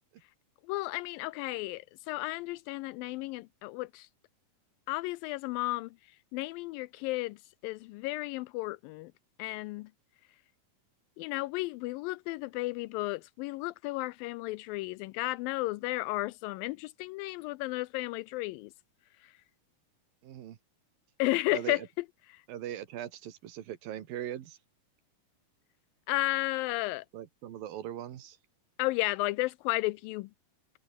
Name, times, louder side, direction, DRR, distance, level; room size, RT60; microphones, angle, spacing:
voice 1, 0.7-4.1 4.9-5.9 6.3-7.4 7.6-9.1 9.4-9.9 11.2-18.7 19.2-19.3 21.2-21.8 26.1-27.1 28.8-30.3, left 20 dB, 85° left, 2.3 m, -33 dB
voice 2, 20.2-20.6 21.5-21.9 22.5-24.6 27.1-28.4, right 11 dB, 80° right, 3.4 m, -40 dB
omnidirectional pair, 4.1 m